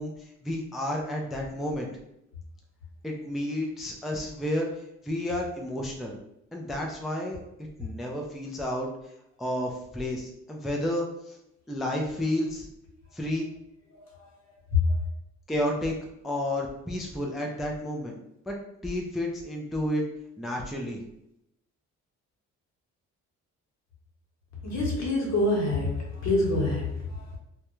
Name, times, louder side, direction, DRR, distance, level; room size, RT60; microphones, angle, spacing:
voice 1, 0.0-1.9 3.0-6.2 6.5-7.4 7.8-8.9 9.4-11.4 11.7-12.7 13.1-13.5 15.5-15.9 16.2-18.1 18.5-18.6 18.8-20.0 20.4-21.0, left 1 dB, ahead, 0 dB, 0.3 m, -31 dB
voice 2, 13.9-14.3 14.7-15.1 24.6-27.4, left 2 dB, 60° left, -2 dB, 1.0 m, -26 dB
2.3 x 2.0 x 3.0 m, 0.82 s
cardioid pair, 90°, 30 cm